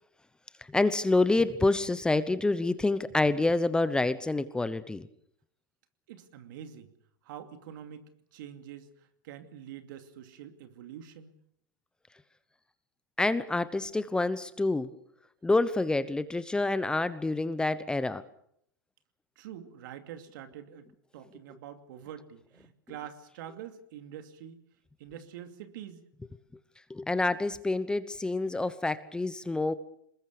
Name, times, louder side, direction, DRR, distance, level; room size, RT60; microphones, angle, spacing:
voice 1, 0.6-5.1 13.2-14.9 15.4-18.2 26.9-29.7, left 2 dB, 5° left, 14 dB, 0.9 m, -27 dB
voice 2, 6.1-6.9 7.2-11.3 19.4-20.9 21.1-24.6 25.0-26.0, right 9 dB, 65° right, 8 dB, 2.6 m, -45 dB
23.5 x 20.5 x 6.8 m, 0.70 s
hypercardioid pair, 125°, 11 cm